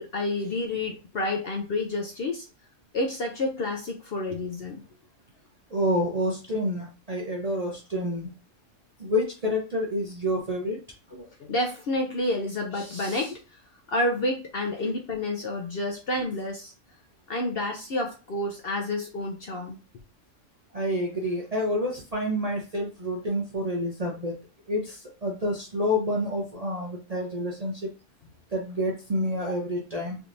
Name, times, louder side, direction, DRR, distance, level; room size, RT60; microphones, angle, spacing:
voice 1, 0.0-2.5 2.9-4.8 11.1-13.6 13.9-16.7 17.3-19.8, left 2 dB, 60° left, 2 dB, 0.7 m, -29 dB
voice 2, 5.7-8.3 9.0-10.8 20.7-24.4 24.7-27.9 28.5-30.2, equal, 45° right, -2 dB, 0.5 m, -28 dB
3.5 x 2.9 x 2.5 m, 0.32 s
omnidirectional pair, 1.4 m